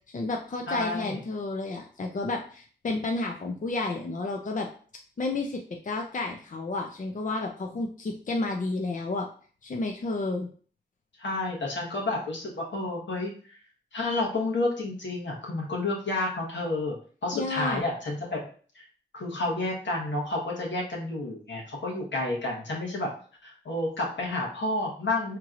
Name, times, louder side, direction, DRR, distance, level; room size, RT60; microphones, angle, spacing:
voice 1, 0.1-4.7 5.2-9.3 9.6-10.5 17.3-17.8, left 2 dB, 45° left, 2 dB, 0.6 m, -31 dB
voice 2, 0.7-1.2 11.2-13.6 13.9-17.0 17.2-18.5 18.7-18.8 19.1-23.1 23.4-25.4, left 2 dB, 80° left, -2 dB, 1.3 m, -30 dB
4.5 x 3.0 x 2.5 m, 0.42 s
cardioid pair, 55°, 19 cm